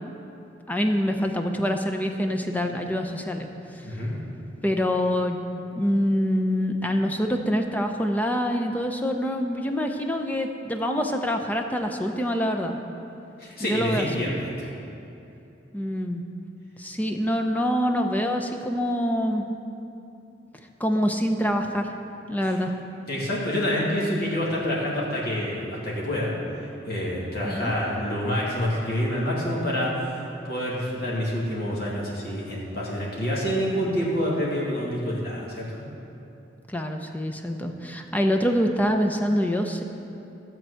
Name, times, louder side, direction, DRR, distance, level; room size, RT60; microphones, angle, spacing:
voice 1, 0.7-3.5 3.8-3.9 4.6-5.4 5.8-12.8 13.6-14.3 15.7-16.2 16.8-19.4 20.8-21.9 22.3-22.7 27.4-27.7 36.7-39.8, equal, 10° left, 4 dB, 0.6 m, -25 dB
voice 2, 13.4-14.7 22.4-22.5 23.1-26.3 26.8-29.9 30.4-35.8, equal, 55° left, -6 dB, 2.2 m, -27 dB
13.5 x 4.5 x 7.8 m, 2.8 s
head